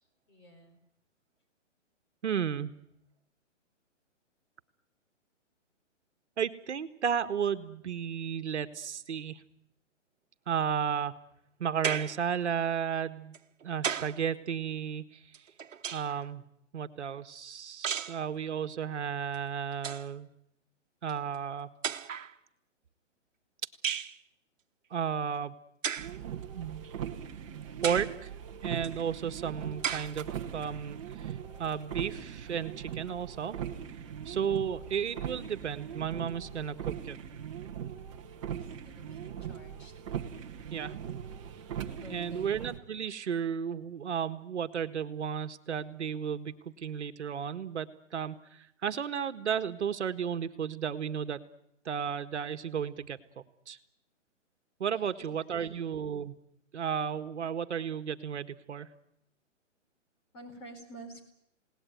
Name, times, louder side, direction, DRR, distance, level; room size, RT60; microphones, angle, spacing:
voice 1, 0.3-0.8 38.5-39.9 42.0-42.5 55.0-55.7 60.3-61.2, right 1 dB, 20° left, 3 dB, 4.6 m, -50 dB
voice 2, 2.2-2.7 6.4-9.4 10.5-11.2 11.6-13.4 13.6-15.2 15.9-16.4 16.7-20.3 21.0-21.7 24.9-25.6 26.5-26.8 27.8-28.3 28.6-33.6 34.3-37.2 40.7-41.0 42.1-51.4 51.9-53.2 53.7-53.8 54.8-56.4 56.7-58.9, right 7 dB, 65° right, 10 dB, 1.8 m, -33 dB
sound 1, 11.8-12.3 13.3-14.2 15.3-16.3 17.8-18.2 19.3-19.4 19.7-20.1 21.1-21.2 21.8-22.3 23.8-24.2 25.8-26.2 26.8-26.9 27.8-28.2 28.8-28.9 29.8-30.2, right 7 dB, 80° right, 1.3 m, -34 dB
sound 2, 26.0-42.8, right 9 dB, 25° right, 1.6 m, -40 dB
28.5 x 18.5 x 9.4 m, 0.77 s
hypercardioid pair, 170°, 38 cm